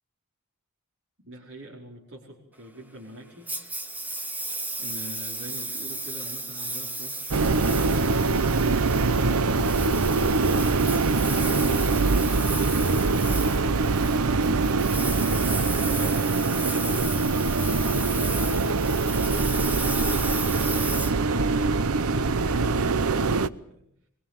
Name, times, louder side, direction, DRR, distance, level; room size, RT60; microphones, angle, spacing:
voice 1, 1.2-3.5 4.8-8.2 15.2-17.0 20.6-23.8, right 1 dB, 60° right, -3 dB, 4.8 m, -43 dB
Engine, 3.5-21.9, right 2 dB, 10° right, 2.0 m, -35 dB
sound 1, 7.3-23.5, right 3 dB, 85° right, 0.8 m, -23 dB
23.5 x 21.5 x 7.5 m, 0.71 s
head